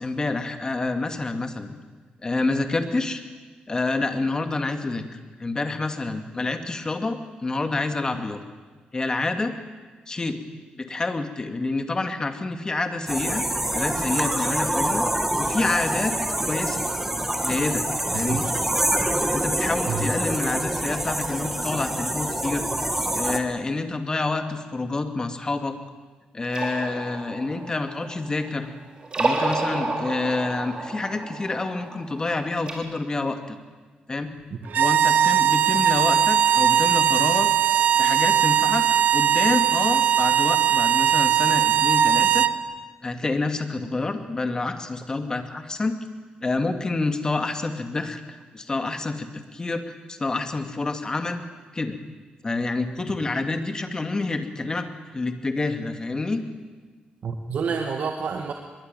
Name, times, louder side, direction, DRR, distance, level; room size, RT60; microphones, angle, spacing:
voice 1, 0.0-1.8 2.2-3.2 3.7-8.4 8.9-9.5 10.1-10.4 10.8-13.4 13.7-15.1 15.4-16.2 16.5-16.9 17.4-17.8 18.1-18.4 19.3-22.6 23.1-25.8 26.3-28.7 29.2-33.6 34.1-34.3 34.8-37.5 38.0-38.9 39.1-42.5 43.0-46.0 46.4-51.4 51.7-52.0 52.4-56.4, left 3 dB, 25° left, 7 dB, 2.5 m, -28 dB
sound 1, 13.1-23.4, right 1 dB, 10° right, 2.3 m, -26 dB
voice 2, 18.1-18.5 19.9-20.1 57.2-58.5, right 5 dB, 55° right, 4 dB, 2.0 m, -28 dB
sound 2, 26.4-28.6 29.0-32.7, right 3 dB, 30° right, 4.8 m, -30 dB
sound 3, 34.7-42.6, right 9 dB, 75° right, 1.1 m, -19 dB
23.5 x 22.5 x 9.2 m, 1.4 s
cardioid pair, 115°, 3 cm